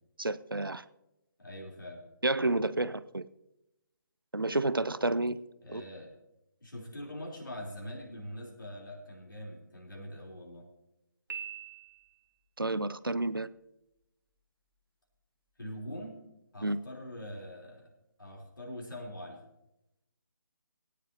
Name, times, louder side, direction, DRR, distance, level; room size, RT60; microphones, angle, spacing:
voice 1, 0.2-0.8 2.2-3.2 4.3-5.4 5.7-5.8 12.6-13.5 16.6-16.8, right 2 dB, 90° right, 16 dB, 0.6 m, -30 dB
voice 2, 1.4-2.0 5.6-6.1 6.6-10.7 15.6-16.2 16.5-17.9 18.2-19.4, equal, 70° left, -1 dB, 3.7 m, -43 dB
Piano, 11.3-12.4, right 8 dB, 70° right, 1.6 m, -43 dB
20.5 x 10.0 x 2.9 m, 0.90 s
figure-of-eight pair, 145°, 11 cm